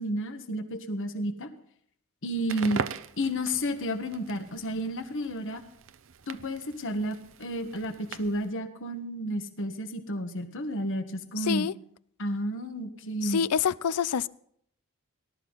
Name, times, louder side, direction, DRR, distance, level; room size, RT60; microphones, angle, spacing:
voice 1, 0.0-1.5 2.2-2.8 3.2-5.6 6.3-11.7 12.2-13.4, equal, 60° left, 1.5 m, -31 dB
Crackle, 2.4-8.5, right 6 dB, 60° right, 0.7 m, -41 dB
voice 2, 11.4-11.7 13.2-14.3, left 7 dB, 90° left, 0.5 m, -26 dB
18.5 x 12.5 x 4.1 m
head